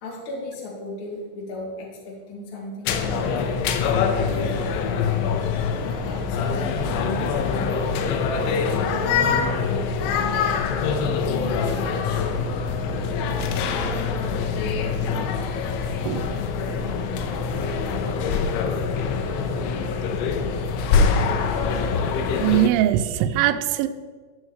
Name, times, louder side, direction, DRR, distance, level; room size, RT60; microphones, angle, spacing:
voice 1, 0.0-3.5 4.0-8.1 8.4-12.3, left 2 dB, 40° left, -3 dB, 2.2 m, -36 dB
sound 1, 2.9-22.7, left 5 dB, 90° left, 3.2 m, -24 dB
sound 2, 12.2-17.8, left 5 dB, 65° left, 2.6 m, -34 dB
voice 2, 22.4-23.9, right 13 dB, 90° right, 8 dB, 3.0 m, -21 dB
13.5 x 6.3 x 4.8 m, 1.5 s
omnidirectional pair, 5.4 m